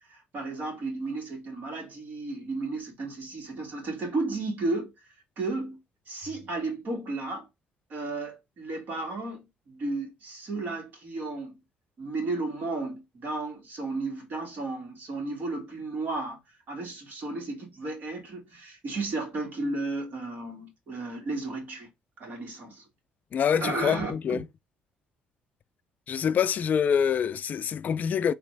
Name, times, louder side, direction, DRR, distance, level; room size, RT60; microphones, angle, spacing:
voice 1, 0.1-4.9 5.4-5.8 6.1-7.5 7.9-11.5 12.0-16.4 16.7-21.9 22.2-22.8 23.6-24.4, right 2 dB, 55° right, 2.2 m, -33 dB
voice 2, 23.3-24.4 26.1-28.3, left 7 dB, 50° left, 0.3 m, -25 dB
4.0 x 2.9 x 3.3 m
supercardioid pair, 80°, 4 cm